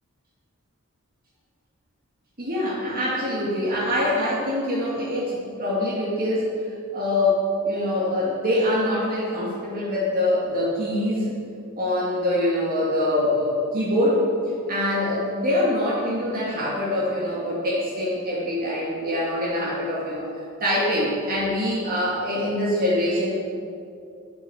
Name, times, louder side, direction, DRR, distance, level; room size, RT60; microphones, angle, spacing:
voice 1, 2.4-6.5 6.9-11.3 11.8-14.3 14.7-20.3 20.6-23.3, left 1 dB, 45° right, -7 dB, 2.6 m, -24 dB
12.0 x 8.4 x 7.3 m, 2.5 s
head